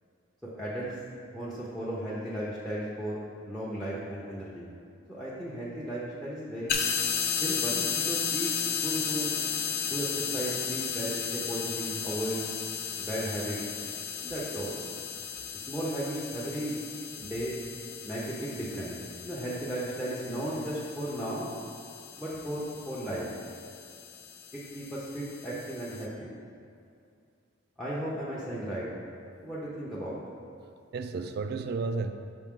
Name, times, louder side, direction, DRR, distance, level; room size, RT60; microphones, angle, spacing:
voice 1, 0.4-1.0 1.3-4.7 5.1-6.8 7.4-9.4 9.8-12.4 13.0-13.6 14.2-14.8 15.5-16.8 17.2-17.5 18.0-19.0 19.2-21.5 22.2-23.3 24.5-26.3 27.8-28.9 29.4-30.2, right 1 dB, ahead, -7 dB, 0.6 m, -35 dB
voice 2, 2.8-3.7 6.4-6.5 12.8-12.9 17.9-18.1 21.9-22.0 23.6-23.8 29.2-29.5 30.5-32.1, right 4 dB, 50° right, 8 dB, 0.3 m, -37 dB
sound 1, 6.7-26.0, left 7 dB, 50° left, 0.5 m, -35 dB
6.1 x 5.1 x 3.6 m, 2.5 s
head